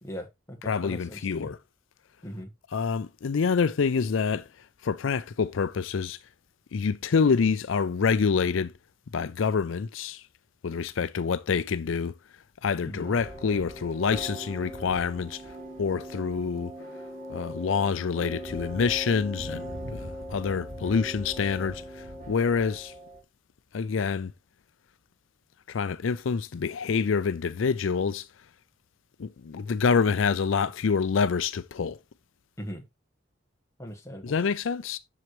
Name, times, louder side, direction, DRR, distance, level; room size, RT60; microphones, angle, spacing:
voice 1, 0.0-1.5 2.2-2.5 12.8-13.2 32.6-32.8 33.8-34.4, equal, 15° left, 1.4 m, -40 dB
voice 2, 0.7-1.6 2.7-4.5 4.8-6.2 6.7-8.7 9.1-10.2 10.6-12.1 12.6-15.5 15.8-16.7 17.3-22.9 23.7-24.3 25.7-28.3 29.2-32.0 34.2-35.0, left 5 dB, 80° left, 0.5 m, -27 dB
Moscow Cathedral Christ the Saviour, 13.0-23.2, equal, 40° right, 2.8 m, -40 dB
7.6 x 6.3 x 3.1 m
head